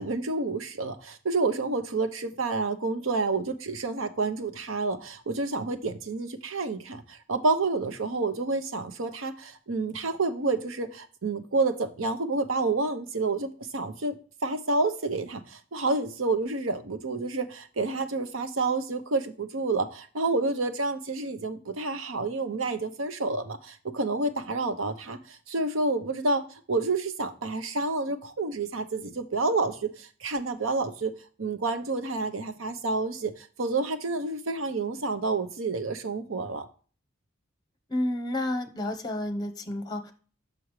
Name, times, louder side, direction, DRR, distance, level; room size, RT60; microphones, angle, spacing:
voice 1, 0.0-31.1 31.4-36.6, right 3 dB, 90° right, 0.8 m, -29 dB
voice 2, 37.9-40.1, left 1 dB, 20° left, 0.9 m, -30 dB
6.1 x 6.1 x 3.1 m
head